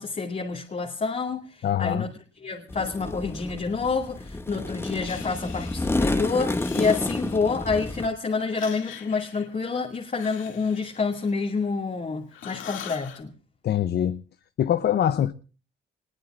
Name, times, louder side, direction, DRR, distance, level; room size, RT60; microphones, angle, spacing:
voice 1, 0.0-2.1 2.4-13.3, left 4 dB, 35° left, 2.3 m, -28 dB
voice 2, 1.6-2.0 13.6-14.2 14.6-15.3, left 10 dB, 55° left, 0.7 m, -23 dB
sound 1, 2.7-8.1, left 2 dB, 10° left, 1.0 m, -30 dB
Breathing, 5.0-6.0 6.5-7.7 8.4-12.0 12.3-13.2, left 9 dB, 75° left, 2.4 m, -44 dB
26.0 x 21.0 x 2.5 m
cardioid pair, 90°, 20 cm